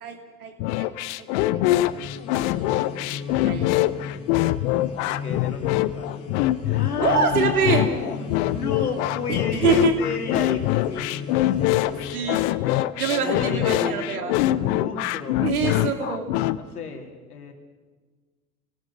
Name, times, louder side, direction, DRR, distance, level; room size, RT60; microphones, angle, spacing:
voice 1, 0.0-0.5 0.8-0.9 1.8-1.9 3.4-3.7 7.0-7.9 9.3-9.9 12.1-12.4 13.0-14.3 15.4-16.3, right 6 dB, 70° right, 4 dB, 3.1 m, -24 dB
sound 1, 0.6-16.6, left 15 dB, 50° left, 0.9 m, -24 dB
sound 2, 1.6-12.6, left 6 dB, 30° left, 2.6 m, -37 dB
voice 2, 3.3-3.6 5.0-6.2 6.7-12.3 13.1-15.4 16.6-17.5, left 5 dB, 75° left, 3 dB, 3.1 m, -33 dB
29.5 x 18.5 x 6.3 m, 1.4 s
figure-of-eight pair, 80°, 46 cm